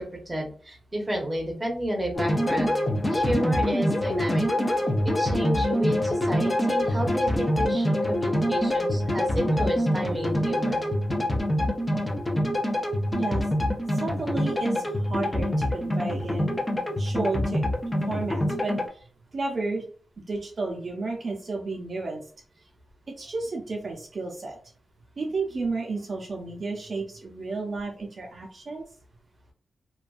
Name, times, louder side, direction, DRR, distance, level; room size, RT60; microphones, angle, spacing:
voice 1, 0.0-4.5 5.0-10.8, equal, 15° right, 0 dB, 0.7 m, -31 dB
sound 1, 2.1-18.9, left 1 dB, 20° left, 0.4 m, -25 dB
voice 2, 13.1-13.5 13.9-16.5 17.0-17.6 18.1-19.1 19.3-19.8 20.3-22.2 23.2-24.6 25.2-28.9, right 3 dB, 50° right, -1 dB, 0.5 m, -32 dB
2.5 x 2.2 x 2.3 m, 0.42 s
wide cardioid pair, 95°, 0 cm